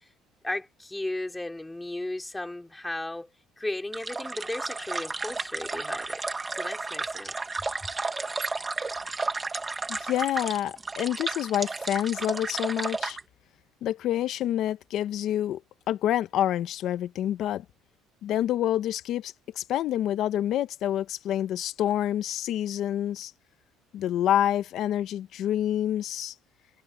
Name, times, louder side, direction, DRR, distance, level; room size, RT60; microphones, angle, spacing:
voice 1, 0.4-3.3 3.6-6.2 6.6-7.3, left 1 dB, 5° left, 3.1 m, -35 dB
sound 1, 3.9-13.2, right 3 dB, 15° right, 1.5 m, -33 dB
voice 2, 9.9-13.2 13.8-15.6 15.9-17.6 18.2-23.3 23.9-26.3, left 11 dB, 50° left, 0.9 m, -27 dB
cardioid pair, 155°, 0 cm